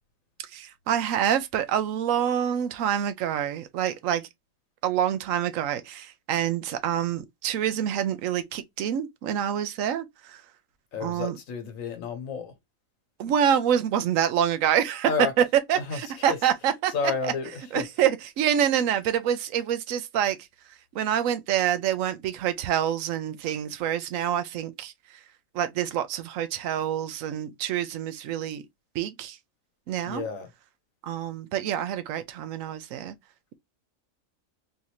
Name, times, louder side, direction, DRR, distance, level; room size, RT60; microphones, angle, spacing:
voice 1, 0.5-4.3 4.8-10.4 11.0-11.4 13.2-15.1 15.4-15.5 15.7-16.9 17.2-17.3 17.7-20.4 20.9-25.2 25.5-28.6 28.9-29.4 29.9-30.3 31.0-33.2, right 9 dB, 75° right, 1.0 m, -26 dB
voice 2, 10.9-12.5 15.0-17.9 30.0-30.5, left 5 dB, 75° left, 1.4 m, -32 dB
4.0 x 2.6 x 2.9 m
omnidirectional pair, 1.4 m